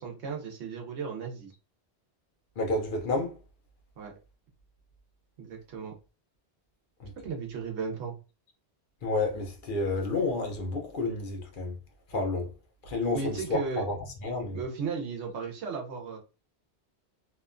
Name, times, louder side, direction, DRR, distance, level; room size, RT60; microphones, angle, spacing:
voice 1, 0.0-1.5 4.0-4.1 5.4-5.9 7.2-8.2 13.1-13.8 14.5-16.2, right 5 dB, 90° right, 1.0 m, -35 dB
voice 2, 2.6-3.4 7.0-7.1 9.0-11.8 12.1-12.5 12.8-14.0 14.2-14.6, left 2 dB, 55° left, 0.7 m, -30 dB
2.8 x 2.2 x 2.4 m
omnidirectional pair, 1.1 m